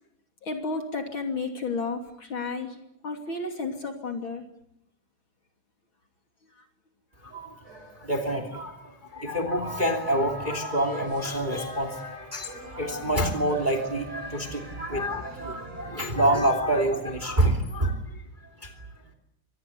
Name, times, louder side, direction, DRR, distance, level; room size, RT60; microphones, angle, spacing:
voice 1, 0.4-2.8 3.0-4.4, left 3 dB, 40° left, 4 dB, 3.4 m, -32 dB
voice 2, 7.2-18.2 18.6-18.9, right 1 dB, 15° right, 6 dB, 2.7 m, -27 dB
sound 1, 7.6-8.4 9.6-16.1, right 3 dB, 85° right, 8.3 m, -45 dB
26.0 x 21.0 x 8.5 m, 0.80 s
omnidirectional pair, 3.4 m